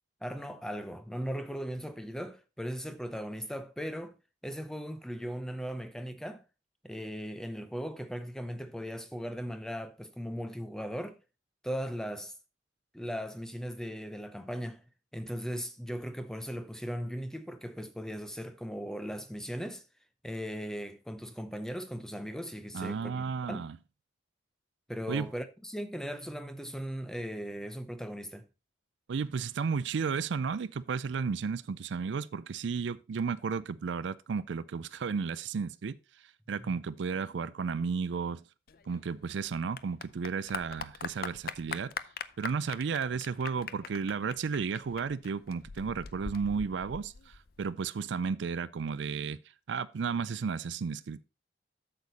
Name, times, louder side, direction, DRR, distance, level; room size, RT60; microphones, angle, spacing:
voice 1, 0.2-4.2 4.4-6.4 6.8-11.2 11.6-12.3 12.9-14.8 15.1-19.8 20.2-23.7 24.9-28.5 36.6-36.8, equal, 5° left, 0.7 m, -38 dB
voice 2, 22.7-23.8 25.1-25.3 29.1-36.0 36.5-38.4 38.9-41.9 42.4-49.4 49.7-51.2, right 5 dB, 80° right, 0.4 m, -33 dB
Clapping / Applause, 38.7-47.7, left 6 dB, 55° left, 0.5 m, -42 dB
8.2 x 6.7 x 4.1 m
head